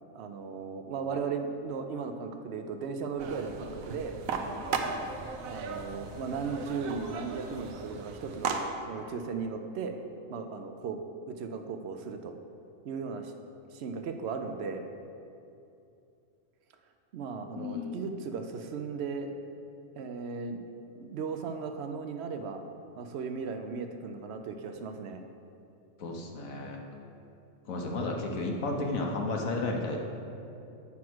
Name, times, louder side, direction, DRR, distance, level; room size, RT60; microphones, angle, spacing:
voice 1, 0.1-4.2 5.5-8.6 8.9-10.0 10.3-11.0 11.3-12.3 12.8-13.3 13.7-14.8 17.1-19.3 20.0-20.6 20.9-22.6 23.0-25.2, right 5 dB, 60° right, 6 dB, 0.7 m, -36 dB
sound 1, 3.2-8.6, right 5 dB, 80° right, 1.1 m, -36 dB
voice 2, 17.5-18.1 26.0-26.8 27.7-30.0, left 2 dB, 75° left, 1 dB, 1.4 m, -33 dB
8.5 x 4.7 x 6.1 m, 2.7 s
omnidirectional pair, 1.4 m